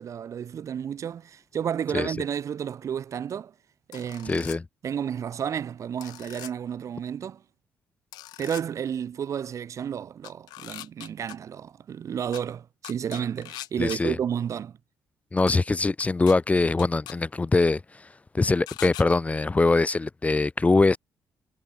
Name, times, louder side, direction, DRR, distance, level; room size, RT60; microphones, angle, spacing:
voice 1, 0.0-3.5 3.9-4.5 4.8-7.4 8.4-14.8, right 8 dB, 50° right, 0.4 m, -31 dB
sound 1, 3.9-4.6 6.0-6.5 8.1-8.6 10.2-11.3 12.3-12.4 12.8-14.0 15.5-15.6 16.0-16.3 16.8-17.1 18.7-19.0, left 16 dB, 90° left, 1.0 m, -41 dB
voice 2, 4.3-4.6 13.8-14.2 15.3-17.8 18.3-21.0, left 3 dB, 20° left, 0.4 m, -22 dB
cardioid pair, 75°, 7 cm